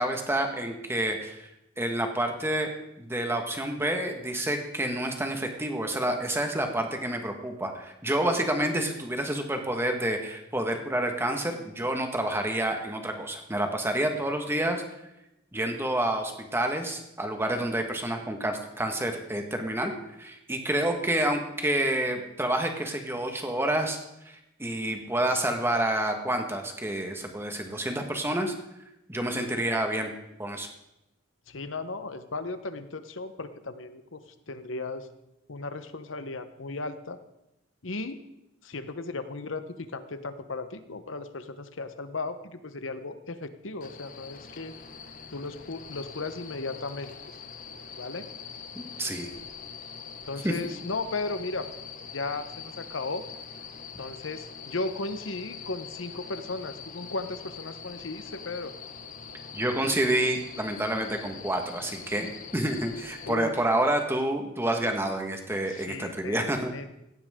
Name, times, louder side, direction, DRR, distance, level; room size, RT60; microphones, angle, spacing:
voice 1, 0.0-1.5 1.8-2.7 3.0-14.8 15.5-24.0 24.2-28.5 29.1-30.1 30.4-30.7 48.7-49.3 50.4-50.5 59.5-66.7, right 1 dB, 15° right, 4 dB, 1.6 m, -28 dB
voice 2, 31.5-34.2 34.5-35.1 35.5-37.2 37.8-38.2 38.6-44.7 45.3-47.1 48.0-48.3 50.3-51.7 52.1-53.2 54.0-58.7 63.2-63.5 65.7-66.9, left 3 dB, 85° left, 10 dB, 1.1 m, -36 dB
sound 1, 43.8-63.4, left 6 dB, 45° left, 1.2 m, -43 dB
17.5 x 15.5 x 3.8 m, 0.88 s
head